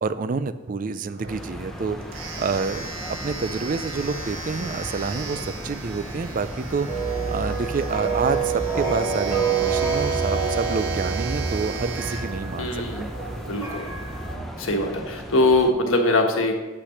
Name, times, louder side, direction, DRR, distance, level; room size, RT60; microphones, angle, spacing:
voice 1, 0.0-2.0 2.4-7.0 7.3-13.1, right 4 dB, 40° right, 13 dB, 0.4 m, -28 dB
Domestic sounds home sounds, 1.1-13.6, right 4 dB, 75° right, 1.3 m, -38 dB
sound 1, 1.3-15.7, equal, ahead, 0.7 m, -37 dB
sound 2, 2.1-14.4, right 5 dB, 15° right, 1.7 m, -29 dB
voice 2, 12.6-13.1 13.4-13.9 14.6-16.5, left 2 dB, 80° left, 3 dB, 1.3 m, -22 dB
8.2 x 5.9 x 5.8 m, 1.3 s
head